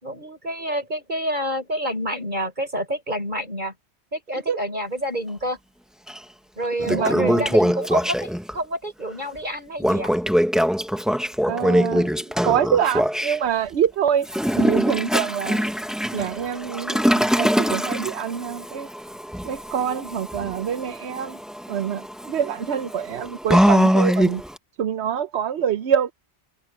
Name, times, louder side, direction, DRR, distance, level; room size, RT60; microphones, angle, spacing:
voice 1, 0.0-3.7 4.1-5.6 6.6-10.1, equal, 45° right, 4.6 m, -28 dB
Toilet flush, 6.1-6.2 6.6-8.5 9.8-13.4 14.2-24.6, equal, ahead, 0.8 m, -23 dB
voice 2, 6.8-7.5 11.5-15.7 16.1-18.9 19.4-21.4 21.7-24.4 24.8-26.1, right 8 dB, 75° right, 1.0 m, -25 dB
omnidirectional pair, 1.1 m